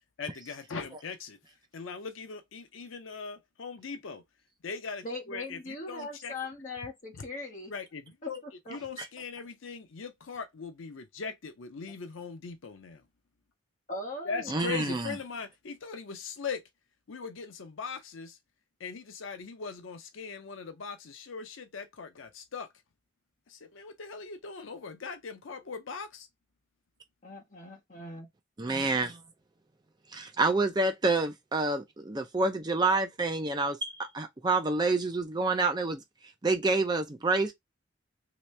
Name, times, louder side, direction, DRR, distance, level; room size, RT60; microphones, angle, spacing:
voice 1, 0.2-1.4 1.7-4.2 4.6-6.3 7.7-8.4 8.7-13.0 14.2-16.6 17.1-18.4 18.8-22.7 23.5-26.3, left 5 dB, 75° left, 0.6 m, -40 dB
voice 2, 5.0-7.7 8.2-8.8 13.9-14.6 27.2-28.3, left 2 dB, 40° left, 1.4 m, -40 dB
voice 3, 14.5-15.1 28.6-29.2 30.1-36.0 36.4-37.5, right 3 dB, 20° right, 0.5 m, -28 dB
3.1 x 2.9 x 3.2 m
head